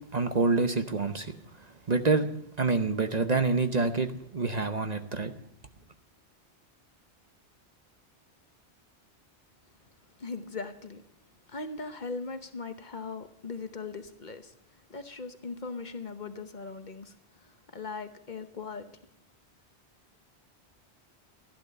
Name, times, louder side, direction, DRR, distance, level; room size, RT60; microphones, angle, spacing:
voice 1, 0.1-1.4 1.9-2.3 2.6-5.3, right 4 dB, 40° right, 0.9 m, -27 dB
voice 2, 10.2-11.0 11.5-18.9, left 4 dB, 45° left, 1.0 m, -39 dB
13.5 x 11.5 x 6.6 m
omnidirectional pair, 1.1 m